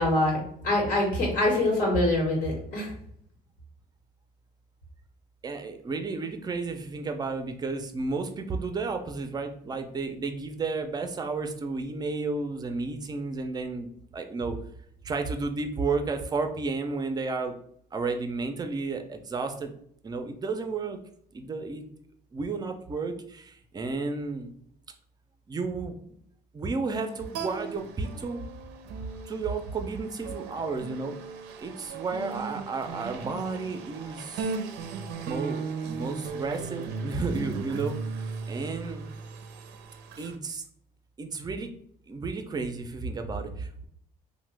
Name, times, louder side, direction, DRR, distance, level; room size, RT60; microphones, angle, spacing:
voice 1, 0.0-2.9, left 1 dB, 80° left, -2 dB, 1.1 m, -25 dB
voice 2, 5.4-14.6 15.0-17.5 17.9-19.7 20.0-21.0 21.3-21.8 22.3-24.5 25.5-26.0 26.5-28.4 29.3-31.2 31.6-34.6 35.3-38.0 38.5-39.1 40.2-40.6 41.2-41.7 42.1-43.9, right 4 dB, 25° right, 7 dB, 0.4 m, -32 dB
sound 1, 27.1-40.4, right 4 dB, 90° right, 0.4 m, -37 dB
2.9 x 2.1 x 3.2 m, 0.67 s
cardioid pair, 110°, 17 cm